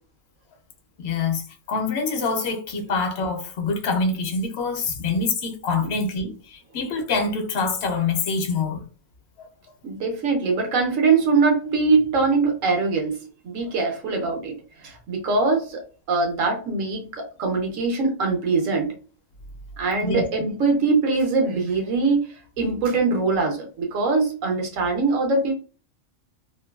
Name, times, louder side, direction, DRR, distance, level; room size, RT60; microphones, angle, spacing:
voice 1, 1.0-1.4 1.7-8.8 9.4-9.5 20.0-20.2, left 4 dB, 65° left, 0.8 m, -25 dB
voice 2, 9.8-15.8 16.1-19.0 19.8-25.5, right 4 dB, 90° right, 1.2 m, -22 dB
2.8 x 2.2 x 2.3 m
omnidirectional pair, 1.3 m